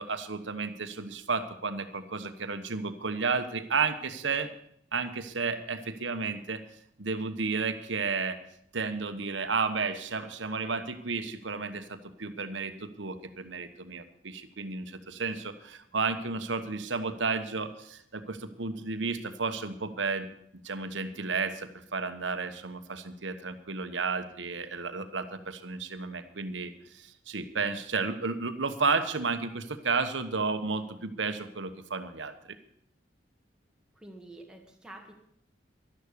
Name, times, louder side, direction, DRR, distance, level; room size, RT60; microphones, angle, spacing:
voice 1, 0.0-4.5 4.9-6.6 7.0-8.4 8.7-20.3 20.6-32.4, right 4 dB, 75° right, 10 dB, 1.2 m, -32 dB
voice 2, 33.9-35.1, right 1 dB, 5° right, 1 dB, 2.0 m, -48 dB
12.0 x 11.5 x 6.9 m, 0.70 s
head